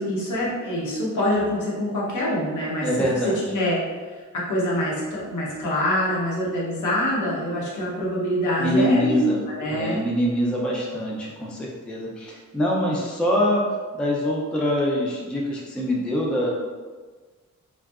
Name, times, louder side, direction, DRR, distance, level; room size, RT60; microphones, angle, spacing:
voice 1, 0.0-3.8 4.3-9.2 9.5-10.0, equal, 80° left, -5 dB, 0.9 m, -25 dB
voice 2, 2.8-3.4 8.6-9.4 9.7-13.7 13.9-16.5, equal, 5° left, -3 dB, 0.3 m, -24 dB
2.6 x 2.3 x 2.3 m, 1.4 s
wide cardioid pair, 135°, 30 cm